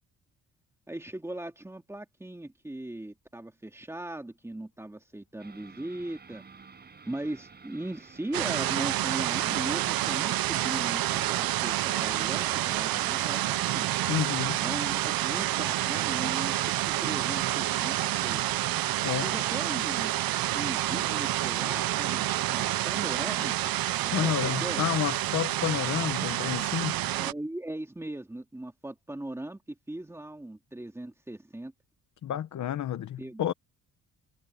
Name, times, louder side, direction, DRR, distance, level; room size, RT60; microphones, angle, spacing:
voice 1, 0.9-6.4 7.1-13.9 14.6-18.4 19.2-20.1 20.5-23.7 24.0-24.8 27.1-31.7 33.2-33.5, right 1 dB, 5° right, 2.3 m, -39 dB
sound 1, 5.4-11.1, right 5 dB, 25° right, 5.7 m, -52 dB
sound 2, 8.3-27.3, right 14 dB, 75° right, 0.6 m, -28 dB
voice 2, 14.1-14.6 19.0-19.2 24.1-27.0 32.2-33.5, left 10 dB, 55° left, 1.0 m, -30 dB
wide cardioid pair, 175°, 36 cm